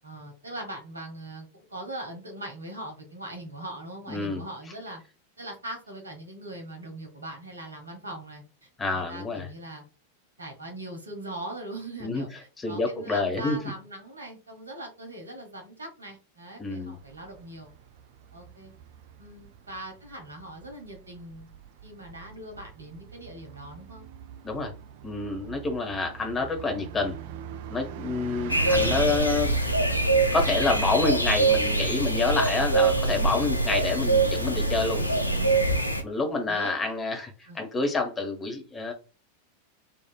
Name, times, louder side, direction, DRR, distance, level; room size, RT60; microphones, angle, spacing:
voice 1, 0.0-5.0 5.4-9.8 10.4-12.3 12.7-17.7 18.3-18.7 19.2-21.6 21.8-24.1 32.3-32.4 34.9-36.1 36.5-36.7 37.5-37.6, right 1 dB, 75° right, 4 dB, 1.2 m, -41 dB
voice 2, 4.1-4.4 8.8-9.5 12.0-12.2 12.6-13.6 16.6-17.0 24.4-24.7 25.0-27.1 27.7-29.5 30.3-35.0 36.0-38.9, left 3 dB, 15° left, 3 dB, 1.1 m, -28 dB
Bus, 16.8-33.9, right 8 dB, 50° right, 0.3 m, -40 dB
sound 1, 28.5-36.0, right 2 dB, 85° left, 0.5 m, -24 dB
4.4 x 2.7 x 2.2 m, 0.32 s
figure-of-eight pair, 90°, 0 cm